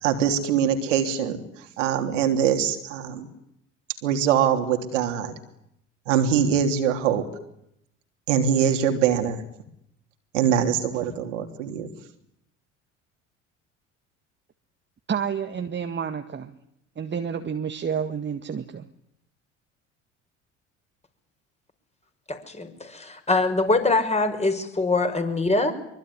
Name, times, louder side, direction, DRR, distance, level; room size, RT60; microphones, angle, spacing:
voice 1, 0.0-1.4 1.8-3.3 4.0-5.4 6.1-7.2 8.3-9.4 10.3-11.9, right 8 dB, 75° right, 6 dB, 3.4 m, -23 dB
voice 2, 15.1-16.6 17.0-18.9, right 7 dB, 30° right, 8 dB, 1.9 m, -29 dB
voice 3, 22.3-25.7, left 3 dB, 15° left, 7 dB, 6.0 m, -23 dB
24.5 x 24.0 x 10.0 m, 0.77 s
hypercardioid pair, 65°, 37 cm